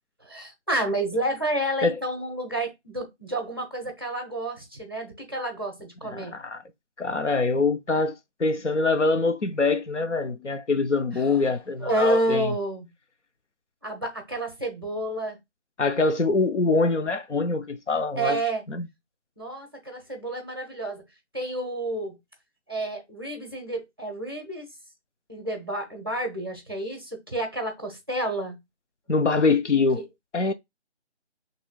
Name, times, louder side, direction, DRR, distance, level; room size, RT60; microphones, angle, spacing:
voice 1, 0.2-6.3 11.1-11.4 11.8-12.9 13.8-15.4 18.2-18.6 19.4-21.0 21.3-22.2 22.7-24.7 25.3-28.6 29.9-30.1, right 1 dB, 20° right, 0.7 m, -30 dB
voice 2, 6.1-6.6 7.0-12.5 15.8-18.4 18.7-18.9 29.1-30.0 30.3-30.5, left 3 dB, 85° left, 0.7 m, -24 dB
5.6 x 3.1 x 2.2 m
figure-of-eight pair, 160°, 35 cm